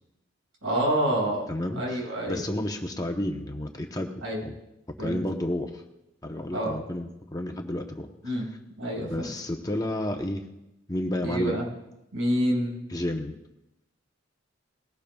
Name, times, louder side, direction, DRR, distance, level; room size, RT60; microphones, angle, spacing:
voice 1, 0.6-1.5 1.7-2.5 4.2-4.4 5.0-5.2 6.5-6.8 8.2-8.5 8.8-9.3 11.2-11.6 12.1-12.8, right 1 dB, 85° right, -2 dB, 5.1 m, -27 dB
voice 2, 1.5-4.5 5.0-5.8 6.2-8.4 9.0-10.4 10.9-11.6 12.9-13.4, left 1 dB, 15° left, 3 dB, 0.9 m, -31 dB
20.0 x 17.0 x 2.3 m, 0.91 s
head